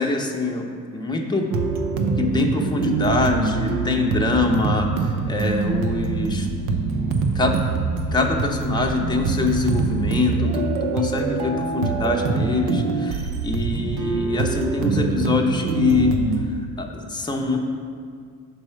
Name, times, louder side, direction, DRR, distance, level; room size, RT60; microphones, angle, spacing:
voice 1, 0.0-1.5 2.2-6.5 7.3-7.6 8.1-16.1 16.8-17.6, left 3 dB, 10° left, 2 dB, 0.7 m, -24 dB
sound 1, 1.5-16.4, right 4 dB, 60° right, 0.7 m, -24 dB
5.4 x 4.3 x 5.5 m, 2.2 s
figure-of-eight pair, 50°, 45 cm